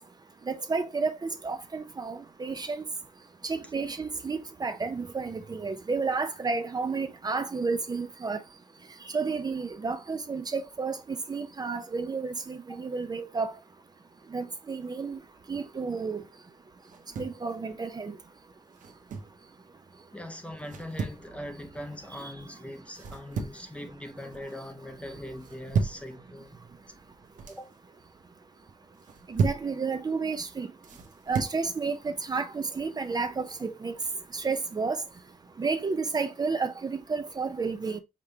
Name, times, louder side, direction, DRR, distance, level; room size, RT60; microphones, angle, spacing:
voice 1, 0.5-2.8 3.4-8.4 9.1-13.5 14.3-15.2 15.5-16.2 17.2-18.2 22.1-22.3 29.3-30.7 31.3-33.9 34.3-35.0 35.6-38.0, right 4 dB, 30° right, 0.6 m, -31 dB
sound 1, 16.9-17.4 18.7-19.4 20.6-21.2 22.9-23.7 24.1-24.5 25.4-26.1 27.1-27.6 28.9-29.7 30.8-31.6, right 5 dB, 80° right, 0.9 m, -33 dB
voice 2, 20.1-26.6 27.5-27.7, left 1 dB, 10° left, 0.7 m, -41 dB
5.1 x 3.4 x 2.7 m
wide cardioid pair, 120°, 13 cm